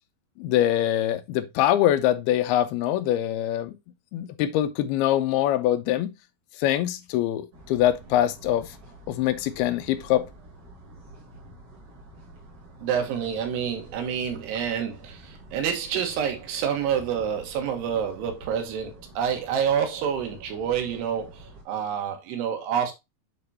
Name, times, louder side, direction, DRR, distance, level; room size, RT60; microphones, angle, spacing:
voice 1, 0.4-3.8 4.1-6.1 6.6-8.7 9.1-10.3, left 12 dB, 80° left, 2.6 m, -24 dB
sound 1, 7.5-21.6, right 1 dB, 40° right, 1.8 m, -48 dB
voice 2, 12.8-22.9, right 8 dB, 90° right, 3.4 m, -28 dB
8.6 x 4.4 x 2.7 m
omnidirectional pair, 4.6 m